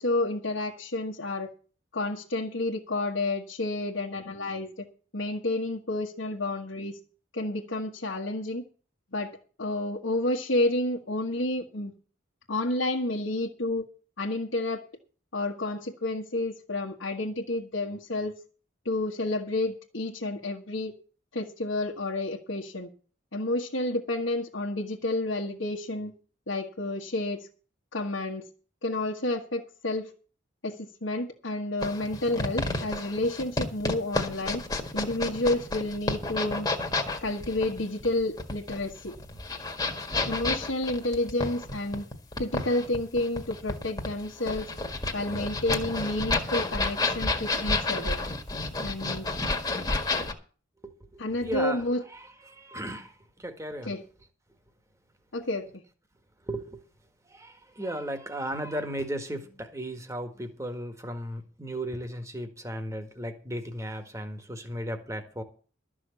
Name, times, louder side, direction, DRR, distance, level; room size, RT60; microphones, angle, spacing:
voice 1, 0.0-1.5 1.9-4.9 5.1-7.0 7.3-8.6 9.1-11.9 12.5-13.8 14.2-14.8 15.3-18.4 18.8-20.9 21.3-22.9 23.3-26.1 26.5-27.5 27.9-28.5 28.8-30.1 30.6-34.6 34.9-36.7 37.2-39.2 40.3-42.1 42.4-44.7 45.1-48.2 48.8-49.3 51.2-52.0 53.8-54.0 55.3-55.7, left 2 dB, 70° left, 1.5 m, -30 dB
sound 1, 31.8-50.3, left 2 dB, 20° left, 1.7 m, -30 dB
voice 2, 50.8-51.8 52.1-53.9 56.5-56.8 57.3-65.4, right 1 dB, 15° right, 1.7 m, -36 dB
13.0 x 6.2 x 8.2 m
head